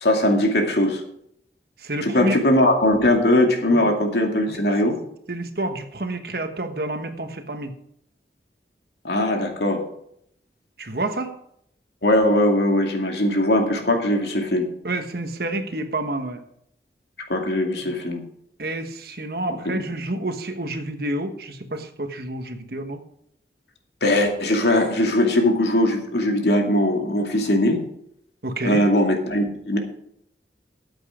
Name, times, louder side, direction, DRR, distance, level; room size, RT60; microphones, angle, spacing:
voice 1, 0.0-1.0 2.0-5.0 9.0-9.8 12.0-14.7 17.3-18.2 19.7-19.8 24.0-27.8 28.6-29.8, left 1 dB, 70° left, 3 dB, 2.4 m, -20 dB
voice 2, 1.8-2.4 3.7-3.9 4.5-4.6 5.3-7.7 10.8-11.3 14.8-16.4 17.8-17.9 18.6-23.0 28.4-28.8, right 2 dB, 55° right, 7 dB, 1.3 m, -29 dB
13.5 x 8.2 x 5.1 m, 0.72 s
head